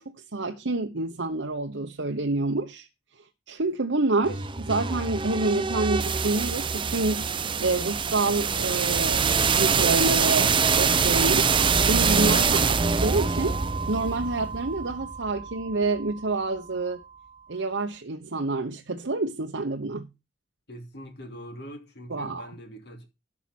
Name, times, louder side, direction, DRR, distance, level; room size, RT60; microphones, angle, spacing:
voice 1, 0.0-2.9 3.5-7.3 7.6-11.5 11.9-13.6 13.9-17.0 17.5-20.1 22.1-22.5, right 3 dB, 80° right, 1.0 m, -28 dB
sound 1, 4.2-16.1, right 5 dB, 25° right, 0.6 m, -24 dB
voice 2, 20.7-23.1, equal, 60° left, 2.9 m, -42 dB
12.5 x 5.9 x 6.0 m
head